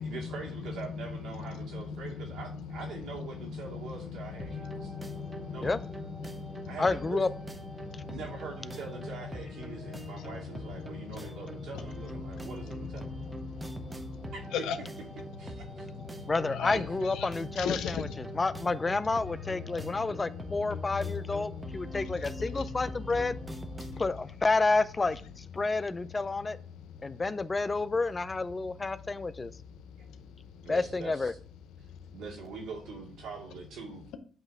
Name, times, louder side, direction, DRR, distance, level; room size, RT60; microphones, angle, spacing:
voice 1, 0.0-4.9 5.5-5.8 6.7-7.3 8.0-13.1 14.3-14.9 15.4-15.9 16.7-16.8 30.0-30.1 30.6-31.4 32.1-34.2, right 4 dB, 80° right, 2.3 m, -43 dB
voice 2, 1.5-2.4 3.2-3.3 3.7-3.8 4.5-5.7 6.2-6.8 7.8-8.2 12.9-14.8 15.7-16.8 17.1-17.3 17.5-18.4 19.8-19.9 20.7-20.8 21.6-22.1 23.8-24.0, left 7 dB, 90° left, 0.7 m, -38 dB
sound 1, 4.4-24.1, right 1 dB, 20° right, 0.9 m, -43 dB
voice 3, 6.8-7.3 16.3-23.3 24.0-25.2 25.5-26.6 27.0-29.5 30.7-31.3, left 3 dB, 25° left, 0.4 m, -29 dB
8.0 x 3.0 x 4.9 m
cardioid pair, 90°, 0 cm